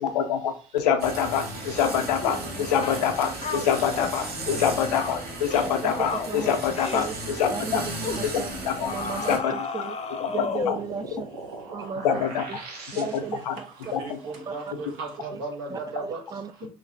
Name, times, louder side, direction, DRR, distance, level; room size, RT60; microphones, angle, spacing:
voice 1, 0.0-7.8 8.2-8.9 9.3-9.6 10.2-10.8 12.0-12.4 12.9-13.6 13.9-14.2, left 8 dB, 85° left, 0.5 m, -26 dB
sound 1, 1.0-9.4, right 2 dB, 50° right, 1.3 m, -35 dB
sound 2, 2.2-2.4 2.8-3.0 3.4-4.1 4.5-4.7 5.0-5.2 5.5-5.8 6.0-6.3 6.7-7.0 7.4-7.6 8.0-8.3 8.9-10.9, left 5 dB, 30° left, 0.6 m, -33 dB
voice 2, 5.6-6.6 6.9-7.1 7.5-8.5 8.8-10.0 10.3-11.3 11.7-12.6 12.9-13.7 14.5-14.6 15.3-15.4 15.7-16.5, right 6 dB, 20° right, 0.4 m, -35 dB
sound 3, 10.0-13.6, right 3 dB, 85° right, 0.8 m, -41 dB
voice 3, 14.0-16.2 16.6-16.7, right 3 dB, 70° right, 1.2 m, -35 dB
3.0 x 2.9 x 3.7 m
hypercardioid pair, 55°, 20 cm